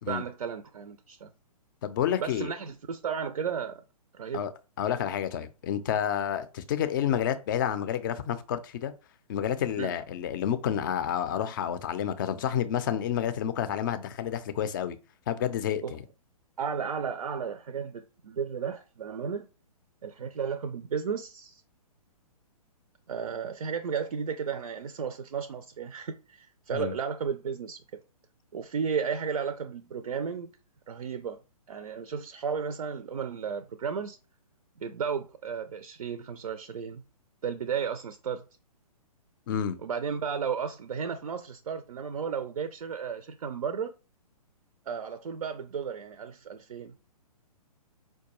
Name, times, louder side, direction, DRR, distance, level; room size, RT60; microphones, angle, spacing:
voice 1, 0.1-1.3 2.2-3.8 4.1-4.4 9.8-10.0 15.8-15.9 16.6-19.5 20.0-21.6 23.1-28.0 28.5-30.5 30.9-31.4 31.7-34.2 34.8-37.0 37.4-38.4 39.8-43.9 44.9-46.9, right 6 dB, 75° right, 0.4 m, -34 dB
voice 2, 1.8-2.5 4.3-4.5 4.8-8.9 9.3-15.0 15.3-16.0 26.7-26.9 39.5-39.8, left 9 dB, 35° left, 0.4 m, -29 dB
4.6 x 2.2 x 2.9 m
figure-of-eight pair, 125°, 19 cm